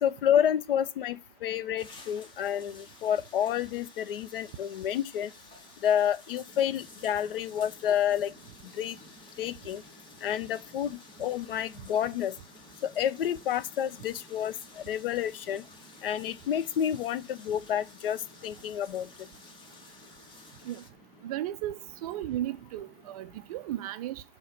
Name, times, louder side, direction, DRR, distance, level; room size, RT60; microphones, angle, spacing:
voice 1, 0.0-5.3 5.8-8.3 8.7-9.0 9.4-9.8 10.2-12.4 12.8-15.6 16.0-19.3, left 9 dB, 70° left, 0.5 m, -29 dB
sound 1, 1.8-20.9, left 3 dB, 15° left, 0.8 m, -53 dB
sound 2, 6.4-23.7, right 1 dB, ahead, 2.7 m, -57 dB
voice 2, 21.2-24.2, right 13 dB, 40° right, 0.4 m, -35 dB
6.3 x 3.0 x 5.7 m
hypercardioid pair, 130°, 30 cm